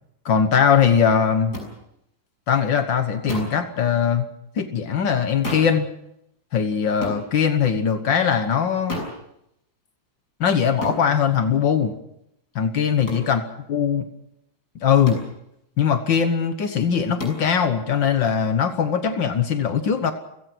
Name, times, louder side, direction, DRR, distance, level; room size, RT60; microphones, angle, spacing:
voice 1, 0.3-1.6 2.5-4.3 4.6-5.9 6.5-9.0 10.4-11.9 12.6-13.4 13.7-14.0 14.8-15.2 15.8-20.1, left 7 dB, 70° left, 8 dB, 1.9 m, -20 dB
sound 1, 1.5-1.7 3.3-3.6 5.4-5.8 7.0-7.2 8.9-9.2 10.8-11.0 13.1-13.3 15.1-15.3 17.2-17.5, left 1 dB, 55° left, 7.2 m, -30 dB
29.5 x 17.5 x 6.1 m, 0.81 s
omnidirectional pair, 2.1 m